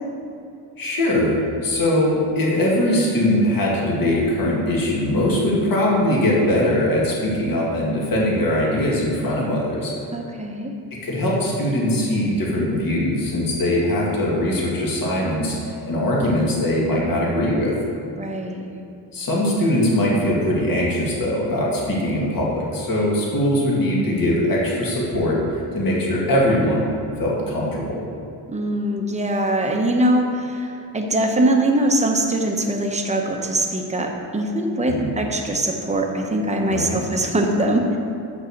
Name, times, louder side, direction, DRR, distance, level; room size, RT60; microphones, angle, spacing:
voice 1, 0.8-9.9 11.0-15.6 15.8-17.7 19.1-25.4 25.7-26.9 27.2-28.0 34.8-35.1 36.7-37.1, left 1 dB, 50° left, -4 dB, 2.2 m, -21 dB
voice 2, 10.1-10.7 18.2-18.7 28.5-38.0, right 1 dB, 15° right, 2 dB, 0.9 m, -22 dB
6.6 x 6.5 x 6.5 m, 2.6 s
cardioid pair, 120°, 44 cm